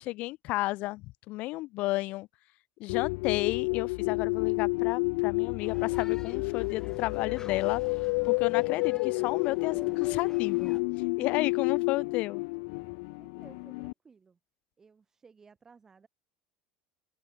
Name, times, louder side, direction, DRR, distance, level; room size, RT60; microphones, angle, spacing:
voice 1, 0.0-2.3 2.8-7.8 8.2-10.8 11.2-12.4, left 19 dB, 45° left, 0.8 m, -32 dB
sound 1, 2.9-13.9, left 30 dB, 70° left, 0.5 m, -30 dB
sound 2, 5.6-10.8, left 6 dB, 20° left, 3.5 m, -48 dB
voice 2, 13.2-14.4 14.8-16.1, right 5 dB, 15° right, 4.6 m, -57 dB
open air
cardioid pair, 165°, 3 cm